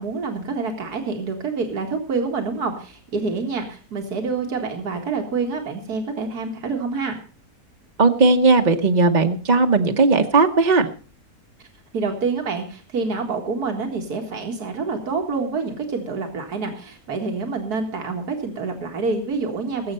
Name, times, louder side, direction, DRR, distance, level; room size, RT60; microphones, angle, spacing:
voice 1, 0.0-7.2 11.9-19.9, right 4 dB, 90° right, 2 dB, 2.3 m, -27 dB
voice 2, 8.0-10.9, right 3 dB, 35° right, 4 dB, 0.9 m, -17 dB
19.5 x 7.9 x 5.5 m, 0.39 s
omnidirectional pair, 1.6 m